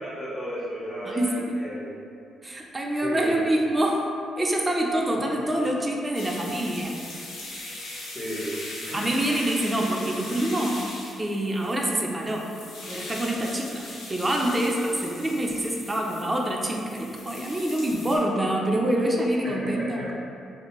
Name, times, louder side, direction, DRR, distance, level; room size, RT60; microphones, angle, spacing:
voice 1, 0.0-2.0 3.0-3.5 8.1-9.0 19.4-20.1, equal, 45° left, -12 dB, 1.0 m, -33 dB
voice 2, 1.0-1.6 2.4-7.0 8.9-10.9 11.2-12.5 12.9-20.1, right 1 dB, 15° right, -1 dB, 0.4 m, -26 dB
sound 1, 6.1-18.2, left 1 dB, 80° left, 0.7 m, -40 dB
3.3 x 2.5 x 2.9 m, 2.5 s
cardioid pair, 90°, 0 cm